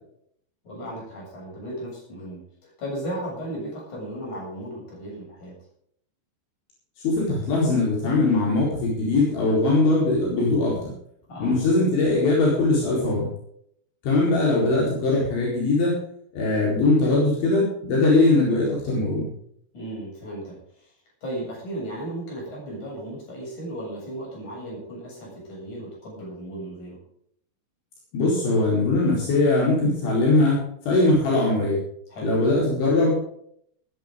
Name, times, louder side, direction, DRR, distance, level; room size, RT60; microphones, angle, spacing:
voice 1, 0.6-5.6 11.3-11.5 19.7-20.9 21.2-27.0 32.1-32.3, right 1 dB, 40° left, -3 dB, 8.9 m, -35 dB
voice 2, 7.0-10.9 11.4-13.3 14.0-16.0 16.3-19.3 28.1-31.8 32.2-33.1, left 2 dB, 70° left, -4 dB, 6.7 m, -21 dB
19.5 x 11.0 x 3.8 m, 0.67 s
omnidirectional pair, 5.5 m